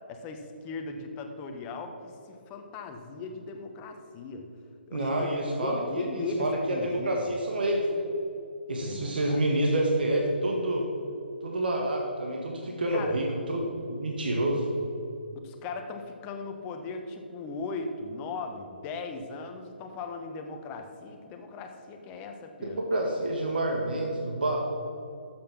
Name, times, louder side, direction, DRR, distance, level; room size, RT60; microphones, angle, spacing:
voice 1, 0.1-4.4 4.9-7.3 8.8-9.4 12.9-13.2 15.4-22.8, left 3 dB, 20° left, 5 dB, 1.2 m, -38 dB
voice 2, 4.9-8.0 8.7-10.9 11.4-13.6 13.9-14.7 22.6-24.6, right 1 dB, 60° right, 0 dB, 1.8 m, -28 dB
12.0 x 8.0 x 6.0 m, 2.7 s
figure-of-eight pair, 135°, 6 cm